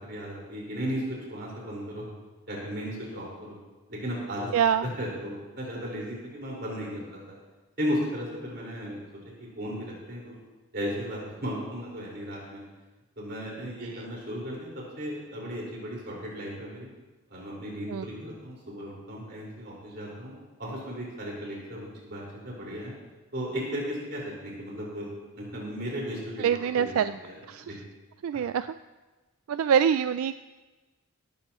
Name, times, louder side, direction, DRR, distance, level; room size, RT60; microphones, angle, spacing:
voice 1, 0.0-2.0 2.5-3.6 3.9-4.5 4.8-7.3 7.8-9.0 9.4-10.3 10.7-12.6 13.2-14.7 15.0-16.9 17.3-20.3 20.6-22.9 23.3-25.1 25.3-26.9 27.2-27.4 27.7-27.8, equal, 50° right, -4 dB, 5.0 m, -35 dB
voice 2, 4.5-4.8 17.9-18.0 26.4-27.2 27.5-27.6 28.2-28.7 29.5-30.4, right 8 dB, 85° right, 12 dB, 0.3 m, -24 dB
17.5 x 14.0 x 3.1 m, 1.2 s
head